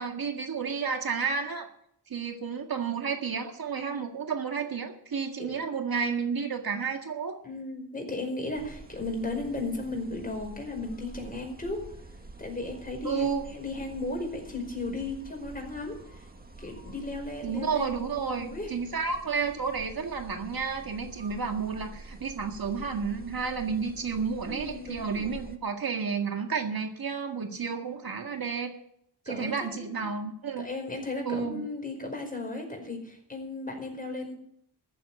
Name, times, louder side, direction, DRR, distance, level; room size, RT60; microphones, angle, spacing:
voice 1, 0.0-1.7 2.1-7.4 13.0-13.5 17.4-28.7 29.3-30.7 31.2-31.7, right 5 dB, 55° right, 4 dB, 1.9 m, -31 dB
voice 2, 7.4-11.8 12.4-16.0 16.6-18.7 24.4-25.3 29.2-30.0 30.6-34.3, left 2 dB, 20° left, 2 dB, 5.1 m, -35 dB
sound 1, 8.5-25.6, right 2 dB, 20° right, 1.8 m, -47 dB
14.5 x 7.7 x 8.4 m, 0.71 s
cardioid pair, 70°, 42 cm